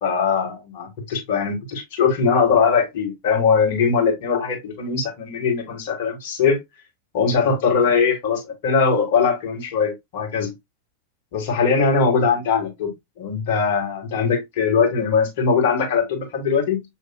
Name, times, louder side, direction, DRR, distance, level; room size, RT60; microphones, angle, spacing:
voice 1, 0.0-6.6 7.1-8.4 8.6-10.5 11.3-16.8, left 5 dB, 50° left, 1.7 m, -21 dB
7.0 x 2.9 x 2.2 m
figure-of-eight pair, 90°, 0 cm